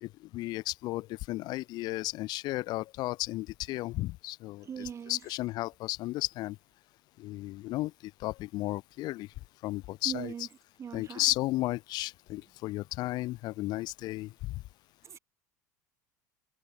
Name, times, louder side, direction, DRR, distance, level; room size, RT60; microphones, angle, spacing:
voice 1, 0.0-6.6 7.2-9.3 9.6-10.3 10.9-14.6, left 18 dB, 45° left, 1.2 m, -34 dB
voice 2, 4.6-5.2 10.1-10.5 10.8-11.2 15.0-15.2, right 7 dB, 30° right, 5.3 m, -39 dB
figure-of-eight pair, 70°, 10 cm